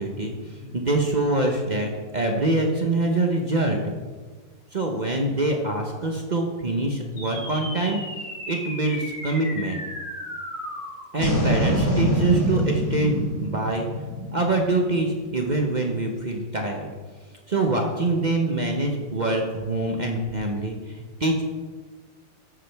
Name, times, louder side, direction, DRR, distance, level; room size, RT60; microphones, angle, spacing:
voice 1, 0.0-3.8 4.7-8.0 8.5-9.8 11.1-13.9 14.3-16.9 17.5-21.4, right 2 dB, 40° right, 2 dB, 0.6 m, -25 dB
sound 1, 7.2-15.7, equal, 30° left, 3.0 m, -28 dB
13.5 x 7.4 x 3.4 m, 1.4 s
omnidirectional pair, 2.0 m